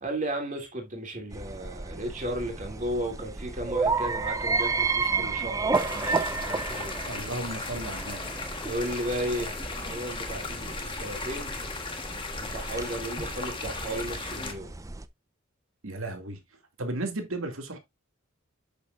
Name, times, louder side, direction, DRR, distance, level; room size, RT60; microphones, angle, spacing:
voice 1, 0.0-7.0 8.6-11.5 12.3-14.7, right 1 dB, 40° right, 2.7 m, -34 dB
sound 1, 1.3-15.1, right 4 dB, 15° right, 0.5 m, -32 dB
sound 2, 5.7-14.5, left 4 dB, 25° left, 1.3 m, -37 dB
voice 2, 7.1-8.4 15.8-16.4 16.8-17.8, right 2 dB, 80° right, 2.3 m, -34 dB
8.2 x 7.0 x 2.5 m
head